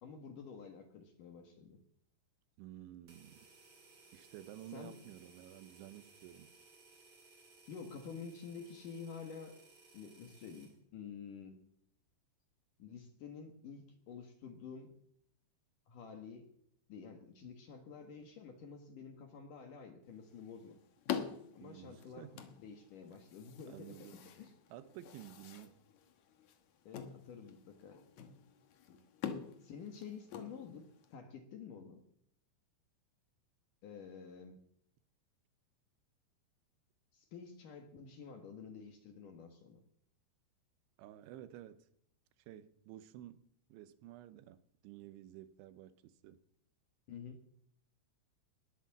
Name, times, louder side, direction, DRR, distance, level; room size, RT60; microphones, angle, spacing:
voice 1, 0.0-1.8 4.7-4.9 7.7-9.6 9.9-11.6 12.8-14.9 15.9-16.5 16.9-20.8 21.5-22.3 22.6-24.5 26.9-28.0 28.9-29.0 29.6-32.0 33.8-34.6 37.1-39.8 47.1-47.4, left 6 dB, 60° left, 2.5 m, -50 dB
voice 2, 2.6-3.5 4.1-6.5 21.6-22.5 23.7-24.3 24.7-25.8 29.4-29.5 41.0-41.9 42.5-43.4 43.7-46.4, right 13 dB, 85° right, 3.2 m, -52 dB
sound 1, 3.1-10.8, right 3 dB, 35° right, 1.8 m, -62 dB
sound 2, 20.1-31.1, left 8 dB, 75° left, 1.7 m, -46 dB
20.5 x 8.3 x 7.3 m
omnidirectional pair, 5.3 m